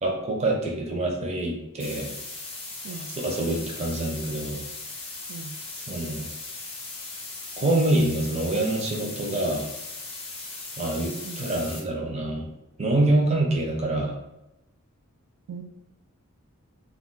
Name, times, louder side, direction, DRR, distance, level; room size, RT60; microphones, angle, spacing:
voice 1, 0.0-2.1 2.9-4.6 5.8-6.3 7.6-9.7 10.8-12.5 12.8-14.2, right 1 dB, 30° right, -1 dB, 0.5 m, -26 dB
sound 1, 1.8-11.8, left 3 dB, 25° left, 0.5 m, -38 dB
voice 2, 2.8-3.1 5.3-5.6 11.2-11.5 15.5-15.6, right 5 dB, 90° right, 6 dB, 0.3 m, -38 dB
2.3 x 2.3 x 3.7 m, 0.90 s
head